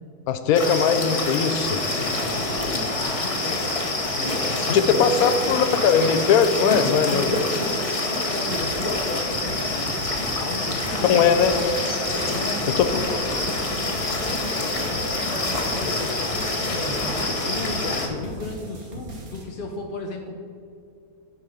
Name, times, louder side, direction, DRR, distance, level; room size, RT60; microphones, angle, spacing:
voice 1, 0.3-1.8 4.7-7.4 11.1-11.5 12.8-12.9, left 7 dB, 75° left, 10 dB, 1.1 m, -20 dB
sound 1, 0.5-18.1, left 2 dB, 25° left, 1.0 m, -26 dB
voice 2, 1.9-5.5 7.5-20.4, left 2 dB, 45° left, 1 dB, 0.7 m, -35 dB
sound 2, 8.5-19.4, equal, 70° right, 1.9 m, -38 dB
11.0 x 5.2 x 5.5 m, 2.5 s
omnidirectional pair, 1.6 m